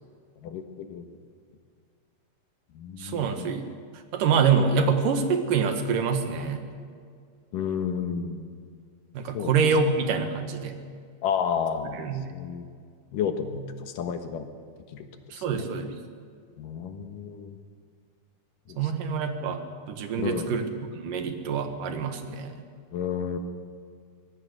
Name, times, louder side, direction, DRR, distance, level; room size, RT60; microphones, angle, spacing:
voice 1, 0.4-1.1 2.7-3.5 7.5-8.5 9.3-9.6 11.2-12.0 12.3-12.7 13.1-14.5 14.9-15.0 15.3-15.6 16.6-17.6 18.7-18.9 20.2-20.5 22.9-23.4, left 7 dB, 90° left, 7 dB, 3.0 m, -31 dB
voice 2, 3.0-3.7 4.1-6.7 9.1-10.8 12.0-12.3 15.3-15.9 18.8-19.6 19.9-20.7 21.0-22.6, right 5 dB, 85° right, 6 dB, 3.2 m, -26 dB
24.0 x 18.5 x 6.7 m, 2.1 s
omnidirectional pair, 3.7 m